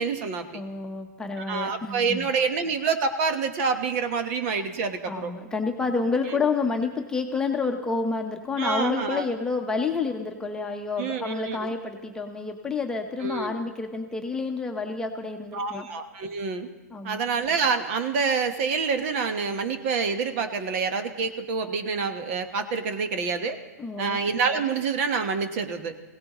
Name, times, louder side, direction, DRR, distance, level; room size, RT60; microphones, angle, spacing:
voice 1, 0.0-0.6 1.5-5.3 6.3-6.5 8.6-9.2 11.0-11.7 13.2-13.5 15.5-16.7 17.0-23.6 24.0-25.9, right 5 dB, 45° right, 8 dB, 1.3 m, -27 dB
voice 2, 0.5-2.3 5.1-15.9 16.9-17.2 23.8-24.2, left 4 dB, 5° left, 3 dB, 1.0 m, -29 dB
22.0 x 17.0 x 3.1 m, 1.1 s
hypercardioid pair, 130°, 9 cm